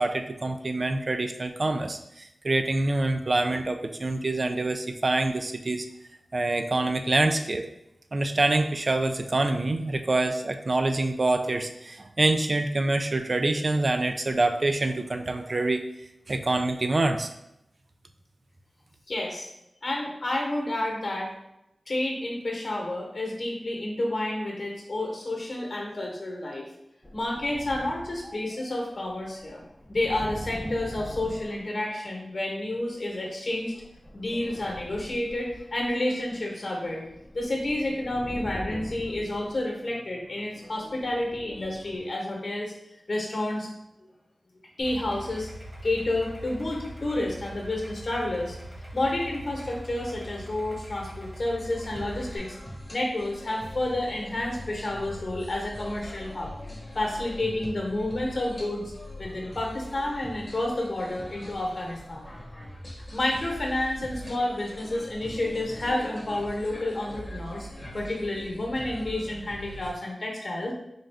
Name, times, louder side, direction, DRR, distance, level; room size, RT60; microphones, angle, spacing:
voice 1, 0.0-5.9 6.3-7.7 8.1-15.8 16.3-17.3, right 2 dB, 50° right, 6 dB, 0.3 m, -26 dB
voice 2, 19.1-19.5 19.8-21.3 21.9-26.7 27.1-29.6 29.9-33.7 34.1-37.0 37.3-42.7 43.1-43.7 44.8-45.5 45.8-48.6 48.9-52.5 52.9-56.5 56.9-58.9 59.2-62.2 63.1-67.7 67.9-70.7, left 1 dB, 55° left, -1 dB, 1.0 m, -30 dB
sound 1, 27.0-32.4 33.2-42.1, equal, 15° left, 0.5 m, -43 dB
Idling, 44.8-52.4, equal, 30° right, 1.2 m, -42 dB
sound 2, 51.8-69.9, equal, 30° left, 0.9 m, -42 dB
3.9 x 2.4 x 3.3 m, 0.86 s
cardioid pair, 55°, 0 cm